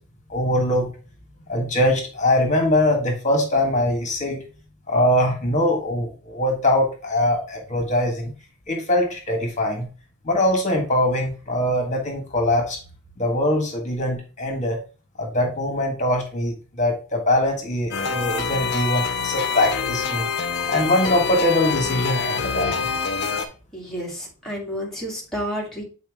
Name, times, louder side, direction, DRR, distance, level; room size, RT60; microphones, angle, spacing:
voice 1, 0.3-0.9 1.5-4.4 4.9-8.3 8.7-9.9 10.2-12.8 13.2-14.8 15.2-20.3 20.7-22.9, left 1 dB, 35° left, 2 dB, 1.7 m, -22 dB
sound 1, 17.9-23.5, left 5 dB, 50° left, 0.8 m, -26 dB
voice 2, 23.7-25.8, equal, ahead, -4 dB, 2.1 m, -30 dB
7.2 x 4.2 x 3.6 m, 0.35 s
head